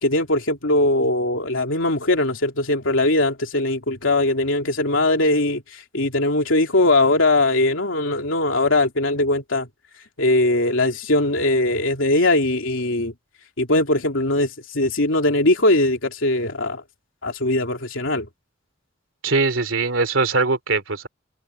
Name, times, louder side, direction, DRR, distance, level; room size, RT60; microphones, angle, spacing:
voice 1, 0.0-9.7 10.2-13.1 13.6-16.8 17.2-18.3, left 2 dB, 85° left, 3.0 m, -20 dB
voice 2, 19.2-21.1, right 3 dB, 85° right, 2.8 m, -21 dB
head